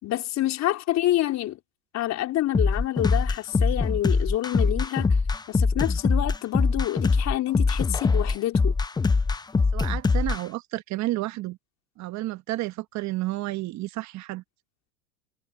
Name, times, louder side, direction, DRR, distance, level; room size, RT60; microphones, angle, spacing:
voice 1, 0.0-1.6 1.9-5.2 5.5-8.8, left 14 dB, 45° left, 4.2 m, -27 dB
sound 1, 2.5-10.4, left 4 dB, 10° left, 0.9 m, -23 dB
voice 2, 9.7-11.6 12.0-14.4, right 17 dB, 45° right, 1.4 m, -31 dB
hypercardioid pair, 105°, 38 cm